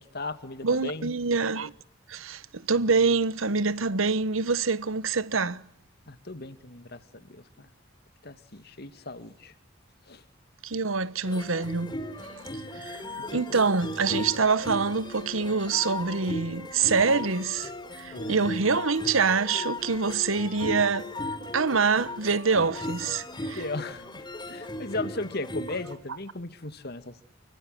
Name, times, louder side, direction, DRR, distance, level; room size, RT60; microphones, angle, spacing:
voice 1, 0.0-1.1 6.1-7.7 8.2-9.5 10.1-10.2 13.3-13.6 18.1-18.8 23.1-23.2 23.5-27.2, left 2 dB, 50° left, 2.3 m, -37 dB
voice 2, 0.6-1.7 2.1-5.6 10.6-12.0 12.7-13.0 13.3-21.1 21.5-23.6, right 4 dB, 90° right, 1.2 m, -25 dB
sound 1, 11.3-25.9, left 1 dB, 25° left, 4.5 m, -37 dB
29.0 x 24.0 x 8.0 m
head